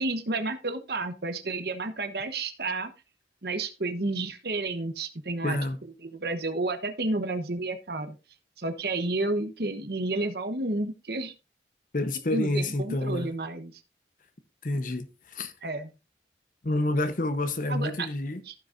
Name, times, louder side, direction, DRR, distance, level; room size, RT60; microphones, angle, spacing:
voice 1, 0.0-2.9 3.4-5.6 6.0-8.2 8.6-11.3 12.3-13.8 15.6-15.9 17.7-18.1 18.5-18.6, right 2 dB, 65° right, 1.1 m, -31 dB
voice 2, 5.4-5.8 11.9-13.3 14.6-15.5 16.6-18.4, left 1 dB, 50° left, 0.9 m, -28 dB
15.0 x 6.4 x 2.6 m
head